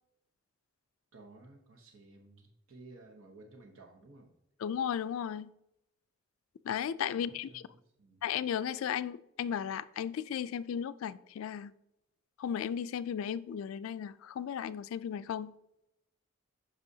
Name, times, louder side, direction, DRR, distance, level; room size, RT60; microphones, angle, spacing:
voice 1, 1.1-4.4 7.1-7.7 8.0-8.2, right 2 dB, 80° right, 0.8 m, -55 dB
voice 2, 4.6-5.5 6.6-7.6 8.2-11.7 12.4-15.5, left 8 dB, 80° left, 0.3 m, -35 dB
8.0 x 5.5 x 2.7 m
head